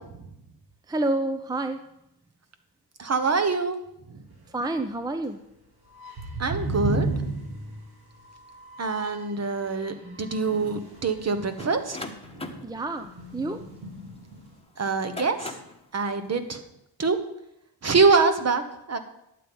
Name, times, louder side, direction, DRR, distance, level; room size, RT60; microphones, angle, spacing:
voice 1, 0.9-1.8 4.5-5.4 12.6-13.6, right 2 dB, 10° right, 9 dB, 0.6 m, -28 dB
voice 2, 3.0-3.8 6.4-7.1 8.8-12.0 12.3-12.6 14.8-15.5 15.9-16.6 17.0-17.2 17.8-18.6 18.9-19.0, right 4 dB, 40° right, 9 dB, 1.1 m, -24 dB
sound 1, 5.9-9.3 9.6-11.9 12.2-12.4 12.8-14.5, right 2 dB, 70° right, 3.0 m, -34 dB
sound 2, 11.6-14.3 14.9-15.8, left 2 dB, 15° left, 1.2 m, -40 dB
11.0 x 7.7 x 5.3 m, 0.81 s
cardioid pair, 95°, 39 cm